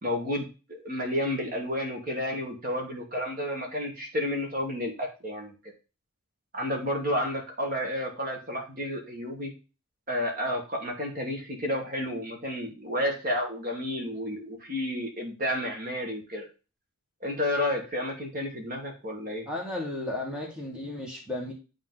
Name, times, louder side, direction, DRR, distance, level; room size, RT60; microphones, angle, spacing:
voice 1, 0.0-5.7 6.5-9.5 10.1-16.5 17.2-19.5, left 1 dB, 40° right, 1 dB, 1.9 m, -31 dB
voice 2, 19.5-21.5, left 2 dB, 5° right, -2 dB, 1.7 m, -34 dB
9.6 x 3.7 x 3.9 m, 0.31 s
head